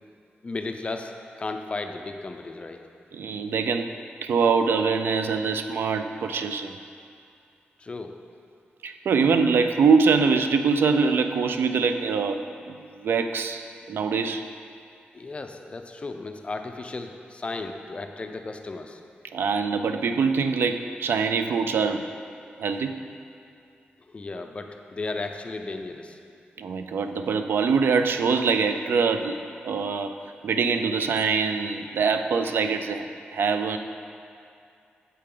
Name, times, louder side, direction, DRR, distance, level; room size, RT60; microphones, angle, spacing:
voice 1, 0.4-2.8 7.8-8.1 15.1-19.0 24.1-26.2, left 3 dB, 30° left, 5 dB, 0.5 m, -35 dB
voice 2, 3.1-3.9 4.2-6.7 8.8-14.4 19.3-22.0 22.6-23.0 26.6-30.1 30.4-33.8, right 5 dB, 80° right, 7 dB, 0.4 m, -24 dB
8.2 x 7.6 x 3.8 m, 2.5 s
wide cardioid pair, 110°, 4 cm